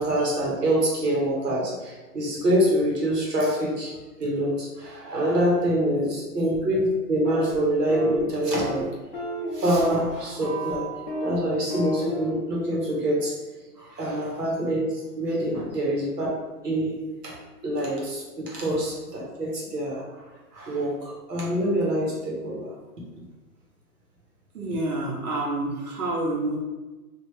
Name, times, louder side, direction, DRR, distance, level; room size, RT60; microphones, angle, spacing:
voice 1, 0.0-3.9 4.2-8.9 9.5-13.3 13.8-16.3 16.6-17.0 17.2-17.4 17.6-20.2 20.5-22.7, right 1 dB, 90° right, -4 dB, 1.4 m, -25 dB
sound 1, 7.2-7.6 7.9-8.2 8.5-8.8 9.1-10.1 10.4-10.7 11.1-11.4 11.7-12.3, equal, 30° left, 0.6 m, -32 dB
voice 2, 24.5-26.6, right 2 dB, 70° right, -2 dB, 1.3 m, -28 dB
3.3 x 2.9 x 3.1 m, 1.2 s
hypercardioid pair, 150°, 47 cm